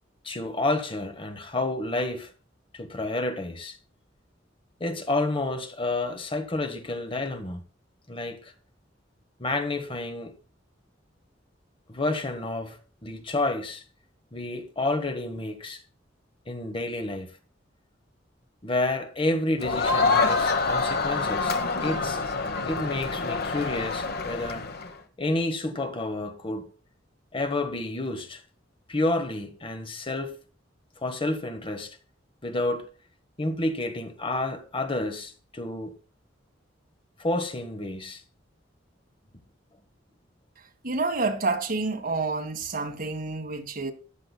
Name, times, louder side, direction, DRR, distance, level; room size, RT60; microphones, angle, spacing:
voice 1, 0.2-2.3 2.7-3.8 4.8-7.6 8.1-8.5 9.4-10.3 11.9-13.8 14.3-15.8 16.5-17.4 18.6-22.2 22.7-24.7 25.2-26.7 27.3-28.4 28.9-30.4 31.0-32.0 32.4-32.9 33.4-36.0 37.2-38.2, left 2 dB, 30° left, 1.3 m, -30 dB
Crowd, 19.6-24.9, left 4 dB, 55° left, 1.3 m, -26 dB
voice 2, 40.8-43.9, right 3 dB, 50° right, 1.9 m, -28 dB
14.0 x 9.9 x 2.3 m
head